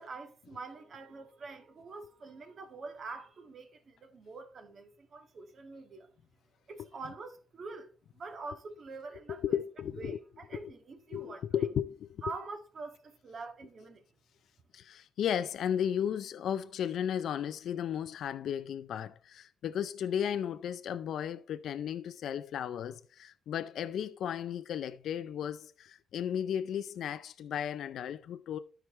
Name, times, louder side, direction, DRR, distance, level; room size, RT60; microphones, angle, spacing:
voice 1, 0.0-6.1 6.7-9.6 10.0-11.6 12.2-14.0, right 3 dB, 50° right, 1.7 m, -45 dB
voice 2, 9.3-10.2 11.1-11.9 12.3-12.4 14.7-28.6, left 9 dB, 70° left, 0.5 m, -34 dB
13.0 x 4.7 x 3.1 m
cardioid pair, 90°, 0 cm